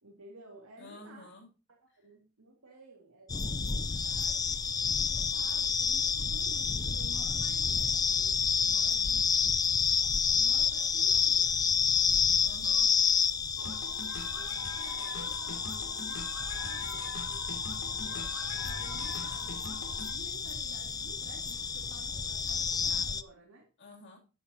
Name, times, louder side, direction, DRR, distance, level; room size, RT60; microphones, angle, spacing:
voice 1, 0.0-1.4 1.7-9.3 10.3-11.6 11.9-12.1 13.5-14.0 14.3-17.5 18.0-23.7, right 2 dB, 85° right, -2 dB, 2.5 m, -53 dB
voice 2, 0.8-1.5 8.7-9.2 12.4-12.9 23.8-24.2, left 2 dB, 55° left, 0 dB, 3.0 m, -50 dB
sound 1, 3.3-23.2, left 6 dB, 20° left, 0.4 m, -29 dB
sound 2, 13.6-20.1, left 3 dB, 80° left, 2.9 m, -42 dB
12.0 x 8.7 x 2.9 m, 0.30 s
head